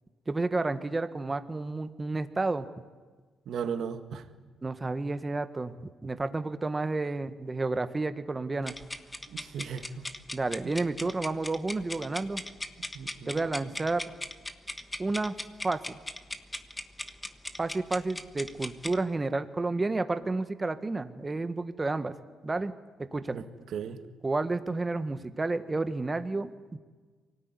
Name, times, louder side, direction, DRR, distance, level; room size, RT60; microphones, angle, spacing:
voice 1, 0.3-2.6 4.6-8.7 10.3-12.4 13.3-14.0 15.0-15.3 15.6-16.0 17.6-22.1 22.4-22.7 23.1-23.4 24.2-26.8, right 3 dB, 20° right, 10 dB, 1.5 m, -31 dB
voice 2, 3.5-4.2 9.3-10.1 12.9-13.5 23.3-23.4 23.7-24.0, right 7 dB, 70° right, 8 dB, 1.9 m, -36 dB
sound 1, 8.6-19.0, left 1 dB, 15° left, 1.4 m, -39 dB
24.0 x 18.5 x 9.8 m, 1.4 s
cardioid pair, 90°, 0 cm